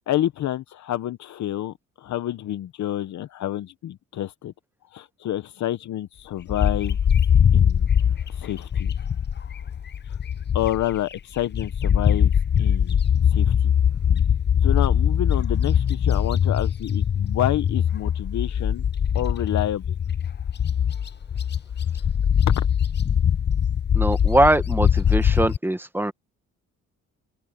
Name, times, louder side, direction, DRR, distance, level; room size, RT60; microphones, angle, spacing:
voice 1, 0.1-4.5 4.9-7.0 7.5-7.9 8.3-8.9 10.1-10.2 10.5-12.3 12.6-13.0 13.3-13.7 14.6-18.9 19.1-19.8 22.5-22.7, left 12 dB, 70° left, 1.0 m, -28 dB
Bird, 6.5-11.0 11.4-25.6, left 8 dB, 35° left, 0.8 m, -22 dB
voice 2, 23.9-26.1, right 1 dB, 5° right, 1.5 m, -21 dB
open air
cardioid pair, 90°, 30 cm